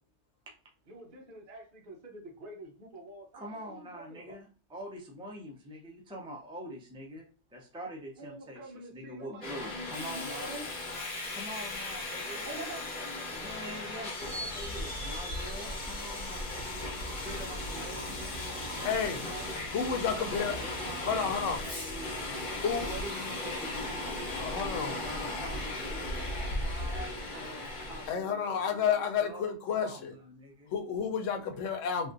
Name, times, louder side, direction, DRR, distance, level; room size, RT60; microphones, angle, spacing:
voice 1, 0.9-4.4 8.2-10.6 12.4-14.0 15.4-18.0 20.3-20.5 26.8-27.9 30.6-30.8 31.3-31.5, right 1 dB, 50° right, 0.9 m, -48 dB
voice 2, 3.3-7.3 7.5-10.5 11.3-12.5 13.3-16.8 17.1-19.5 20.2-22.5 22.8-28.9 29.2-30.7, equal, 5° right, 0.4 m, -45 dB
Subway metro underground, 9.4-28.1, left 1 dB, 45° left, 1.1 m, -37 dB
voice 3, 18.8-19.2 19.7-20.6 21.0-21.6 22.6-23.0 24.3-25.0 28.1-30.1 30.7-32.1, left 7 dB, 85° left, 1.0 m, -31 dB
3.4 x 2.5 x 2.5 m
omnidirectional pair, 1.2 m